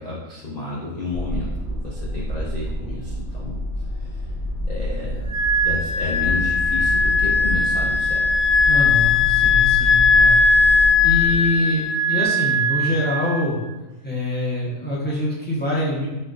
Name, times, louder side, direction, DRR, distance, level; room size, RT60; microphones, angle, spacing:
voice 1, 0.0-3.6 3.9-4.3 4.7-5.3 5.6-8.3, left 2 dB, 75° left, -5 dB, 0.3 m, -31 dB
sound 1, 1.1-11.4, equal, 50° left, 1.4 m, -29 dB
Wind instrument woodwind instrument, 5.3-13.6, left 3 dB, 60° right, 0.7 m, -19 dB
voice 2, 8.7-10.4 11.0-13.5 14.0-16.1, left 1 dB, 10° left, -8 dB, 0.5 m, -24 dB
4.3 x 2.4 x 2.4 m, 1.1 s
omnidirectional pair, 1.5 m